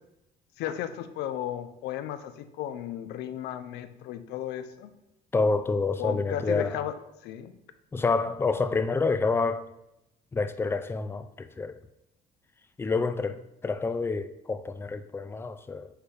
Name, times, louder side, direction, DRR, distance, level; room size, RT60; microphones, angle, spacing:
voice 1, 0.6-4.9 6.0-6.9 7.2-7.5 7.9-8.0, left 11 dB, 85° left, 0.5 m, -34 dB
voice 2, 5.3-6.8 7.9-9.7 10.3-11.8 12.8-15.9, left 4 dB, 15° left, 0.3 m, -28 dB
7.9 x 4.0 x 3.2 m
cardioid pair, 110°, 17 cm